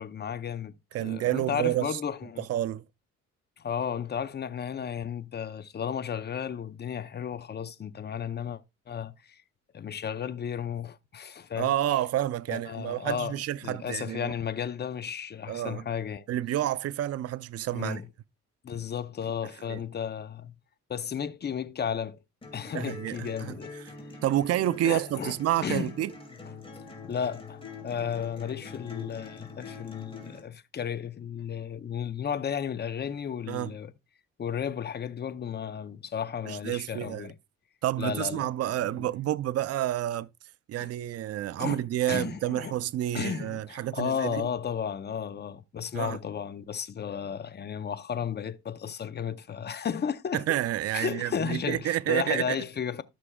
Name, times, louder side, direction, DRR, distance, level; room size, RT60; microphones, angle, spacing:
voice 1, 0.0-2.4 3.6-8.6 8.9-9.4 9.7-11.7 12.5-13.3 13.6-16.2 17.7-18.1 18.6-20.5 20.9-22.2 22.5-23.8 24.8-25.3 25.6-25.9 27.0-33.9 34.4-37.4 38.0-38.5 38.8-39.1 40.8-40.9 41.6-42.7 43.1-50.6 50.9-53.0, left 7 dB, 35° left, 0.7 m, -34 dB
voice 2, 0.9-2.0 2.4-2.8 11.6-14.3 15.5-15.8 16.3-18.0 19.7-19.8 22.7-23.9 24.2-26.1 33.5-33.7 36.4-37.3 37.8-40.3 40.7-44.5 45.9-46.2 50.3-52.6, right 13 dB, 55° right, 0.5 m, -29 dB
sound 1, 22.4-30.4, left 4 dB, 20° left, 2.5 m, -44 dB
13.5 x 6.0 x 2.3 m
cardioid pair, 90°, 30 cm